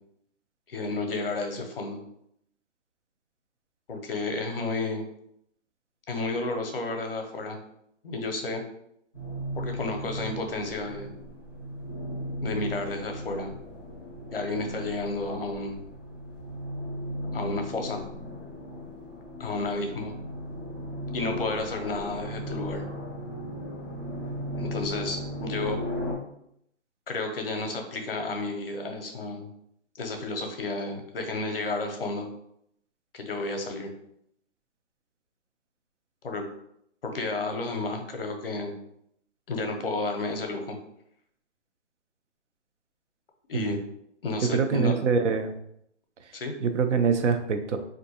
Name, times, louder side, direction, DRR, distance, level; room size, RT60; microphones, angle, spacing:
voice 1, 0.7-2.0 3.9-5.1 6.1-7.6 8.0-8.6 9.6-11.1 12.4-13.5 14.3-15.8 17.3-18.0 19.4-20.1 21.1-22.8 24.6-25.8 27.1-29.5 30.0-32.3 33.1-33.9 36.2-36.5 37.0-38.7 39.5-40.8 43.5-43.8 44.2-44.9 46.3-46.5, left 2 dB, 50° left, 4 dB, 0.6 m, -31 dB
sound 1, 9.1-26.1, equal, 20° right, 0.5 m, -36 dB
voice 2, 44.4-45.5 46.6-47.8, right 5 dB, 75° right, 8 dB, 0.6 m, -24 dB
3.4 x 2.5 x 2.7 m, 0.74 s
hypercardioid pair, 175°, 37 cm